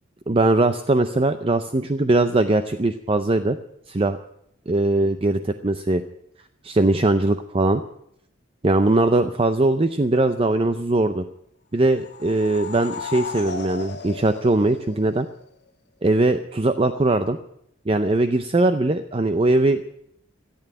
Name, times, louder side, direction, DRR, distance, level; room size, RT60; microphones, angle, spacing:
voice 1, 0.3-3.6 3.9-4.2 4.7-6.0 6.6-7.8 8.6-11.2 11.7-15.3 16.0-17.4 17.9-19.8, right 2 dB, 30° right, 10 dB, 0.6 m, -20 dB
sound 1, 11.9-15.4, left 4 dB, 55° left, 1.3 m, -35 dB
14.5 x 9.2 x 9.8 m, 0.73 s
head